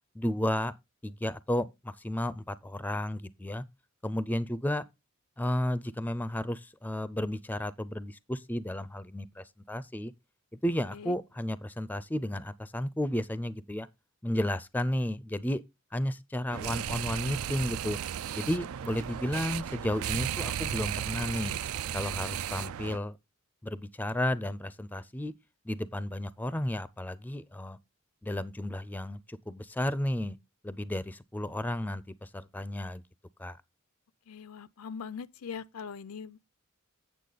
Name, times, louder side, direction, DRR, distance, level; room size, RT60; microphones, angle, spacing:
voice 1, 0.1-0.7 1.0-3.6 4.0-4.8 5.4-10.1 10.6-13.9 14.2-15.6 15.9-18.0 18.4-21.5 21.9-23.2 23.6-25.3 25.7-27.8 28.2-30.4 30.6-33.0 33.4-33.6, left 1 dB, 10° left, 0.4 m, -33 dB
sound 1, 16.5-23.0, right 9 dB, 75° right, 0.4 m, -35 dB
voice 2, 34.3-36.4, left 6 dB, 90° left, 0.5 m, -41 dB
8.4 x 7.0 x 3.9 m
head